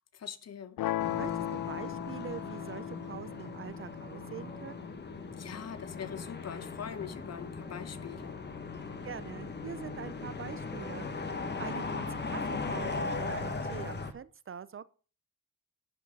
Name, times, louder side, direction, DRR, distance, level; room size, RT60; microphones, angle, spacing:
voice 1, 0.1-0.8 5.4-8.4, left 8 dB, 45° left, 1.1 m, -42 dB
sound 1, 0.8-6.8, left 13 dB, 70° left, 0.5 m, -38 dB
sound 2, 1.0-14.1, left 3 dB, 30° left, 1.4 m, -38 dB
voice 2, 1.2-4.9 8.8-14.9, right 8 dB, 40° right, 0.6 m, -44 dB
11.5 x 6.1 x 5.4 m
cardioid pair, 125°, 35 cm